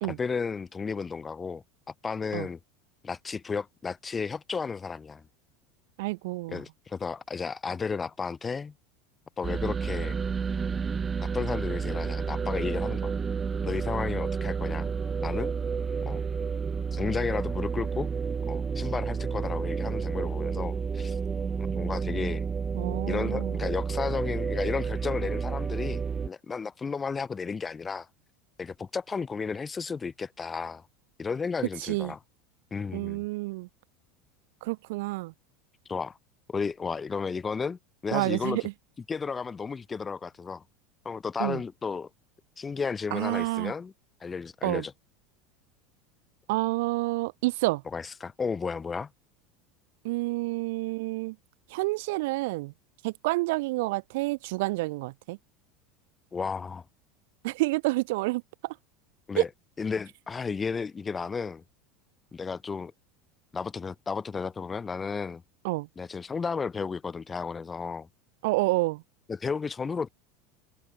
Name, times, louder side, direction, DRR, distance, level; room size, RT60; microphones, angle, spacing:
voice 1, 0.0-1.6 2.0-2.6 3.0-5.2 6.5-8.7 9.4-10.2 11.2-13.1 13.6-14.9 15.2-15.5 16.1-16.2 16.9-18.1 18.5-21.2 21.7-22.4 23.1-28.1 28.6-30.8 31.2-32.2 32.7-33.2 35.9-36.2 36.5-38.7 39.1-40.6 41.1-42.1 42.6-43.9 44.2-44.9 47.9-49.1 56.3-56.8 59.3-59.5 59.8-61.6 62.3-62.9 63.5-65.4 66.0-68.1 69.3-70.1, left 5 dB, 15° left, 5.3 m, -33 dB
voice 2, 6.0-6.6 22.7-23.6 31.8-32.1 32.9-33.7 34.6-35.3 38.1-38.6 41.4-41.6 43.1-43.7 44.6-44.8 46.5-47.8 50.0-51.4 51.7-52.7 53.0-55.4 57.4-58.7 59.4-59.5 65.6-65.9 68.4-69.0, right 22 dB, 75° right, 0.5 m, -29 dB
sound 1, 9.4-26.3, right 6 dB, 20° right, 3.5 m, -30 dB
supercardioid pair, 135°, 0 cm